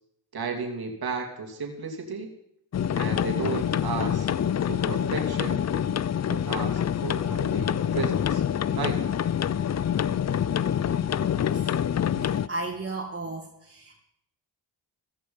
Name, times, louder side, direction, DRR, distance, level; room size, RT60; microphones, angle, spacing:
voice 1, 0.3-2.3 2.9-4.3 4.7-5.6 6.3-8.4 8.8-9.0, right 4 dB, 55° right, 2 dB, 2.8 m, -33 dB
sound 1, 2.7-12.5, left 9 dB, 35° left, 0.5 m, -26 dB
voice 2, 12.2-14.0, right 2 dB, 25° right, -2 dB, 2.5 m, -35 dB
15.5 x 14.0 x 5.5 m, 0.77 s
cardioid pair, 90°, 45 cm